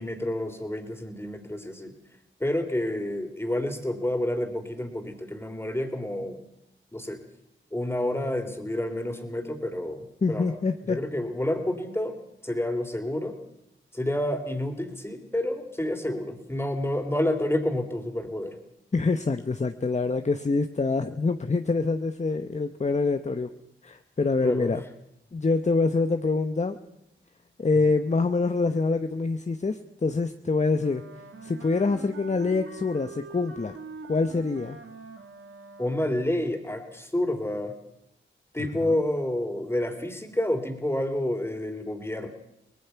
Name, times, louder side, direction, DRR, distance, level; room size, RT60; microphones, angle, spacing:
voice 1, 0.0-1.9 2.4-6.4 6.9-7.2 7.7-10.6 10.9-12.2 12.4-13.4 13.9-18.6 24.4-24.8 35.8-37.7 38.5-42.3, left 1 dB, 10° left, 5 dB, 3.5 m, -29 dB
voice 2, 10.2-11.0 18.9-23.5 23.8-24.8 25.3-26.8 27.6-31.0 31.4-33.8 34.1-34.8 38.6-39.0, left 3 dB, 35° left, 8 dB, 0.9 m, -25 dB
Wind instrument woodwind instrument, 30.7-36.3, right 4 dB, 80° right, 2.1 m, -44 dB
23.5 x 19.5 x 5.8 m, 0.82 s
cardioid pair, 60°, 21 cm